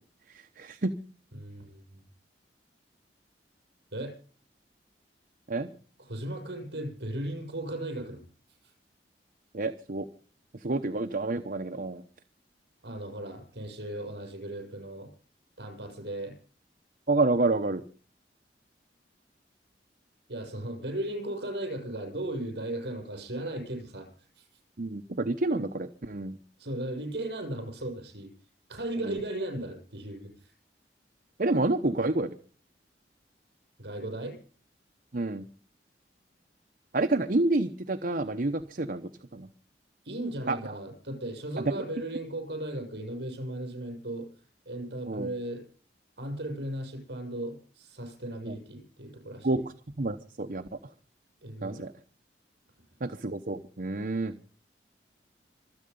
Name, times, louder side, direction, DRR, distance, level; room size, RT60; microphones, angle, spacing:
voice 1, 0.3-0.9 5.5-5.7 9.5-10.1 10.5-12.0 17.1-17.8 24.8-26.4 29.0-29.2 31.4-32.4 35.1-35.5 36.9-39.5 40.5-40.8 41.6-41.8 45.1-45.3 48.5-48.6 49.4-50.8 51.6-51.9 53.0-54.4, right 2 dB, 50° right, 6 dB, 0.9 m, -29 dB
voice 2, 1.3-2.0 3.9-4.2 6.1-8.3 8.6-8.7 12.8-15.1 15.6-16.4 20.3-24.4 26.6-28.3 28.7-30.5 33.8-34.4 40.0-44.3 44.6-45.6 46.2-49.5 51.4-51.8, right 1 dB, 70° right, 4 dB, 6.8 m, -36 dB
26.0 x 8.7 x 5.4 m, 0.42 s
head